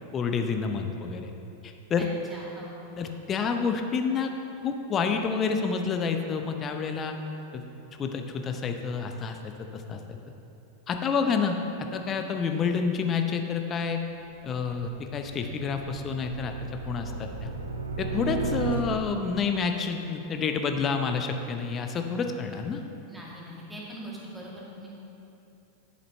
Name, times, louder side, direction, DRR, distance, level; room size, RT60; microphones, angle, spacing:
voice 1, 0.1-1.3 1.6-2.1 3.0-4.3 4.6-7.1 7.5-7.6 8.0-10.2 10.9-11.6 11.9-14.0 14.4-16.5 16.9-17.5 18.0-22.8, left 5 dB, 25° left, 5 dB, 0.7 m, -29 dB
voice 2, 2.0-3.2 11.2-11.4 17.0-17.6 23.1-24.9, equal, 5° right, -5 dB, 2.0 m, -43 dB
sound 1, 14.1-19.4, right 3 dB, 75° right, 0.6 m, -35 dB
10.5 x 8.2 x 3.2 m, 2.9 s
figure-of-eight pair, 90°, 0 cm